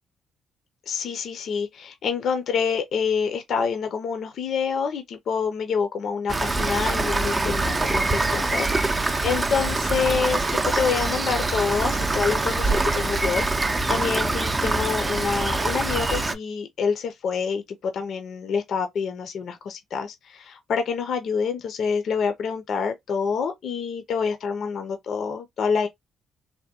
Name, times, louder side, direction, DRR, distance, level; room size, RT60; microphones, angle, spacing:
voice 1, 0.9-13.4 13.9-25.9, left 6 dB, 65° left, 0.5 m, -27 dB
Rain, 6.3-16.3, right 2 dB, 25° right, 0.4 m, -24 dB
3.4 x 2.2 x 2.8 m
cardioid pair, 90°, 0 cm